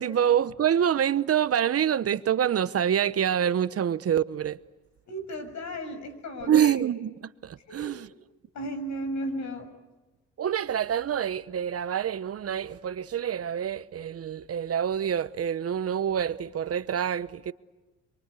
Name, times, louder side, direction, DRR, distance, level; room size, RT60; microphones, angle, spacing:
voice 1, 0.0-4.6 6.4-8.1 10.4-17.5, right 9 dB, 50° right, 1.0 m, -26 dB
voice 2, 5.1-6.7 7.7-8.0 8.5-9.7, equal, 65° left, 6.8 m, -34 dB
27.5 x 23.0 x 8.3 m
cardioid pair, 90°, 30 cm